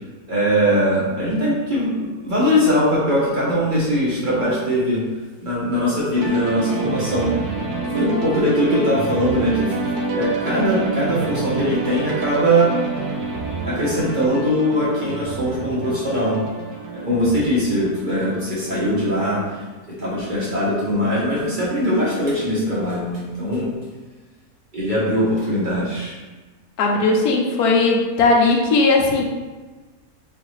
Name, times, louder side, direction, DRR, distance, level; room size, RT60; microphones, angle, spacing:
voice 1, 0.3-5.0 5.4-7.3 7.9-9.7 10.1-12.7 13.6-16.4 16.9-19.6 20.0-23.7 24.7-26.2, equal, 35° right, -7 dB, 1.1 m, -21 dB
sound 1, 6.1-19.9, right 4 dB, 85° right, 1.1 m, -28 dB
voice 2, 26.8-29.2, left 3 dB, 85° left, 1 dB, 1.2 m, -17 dB
3.9 x 3.2 x 3.1 m, 1.3 s
omnidirectional pair, 1.6 m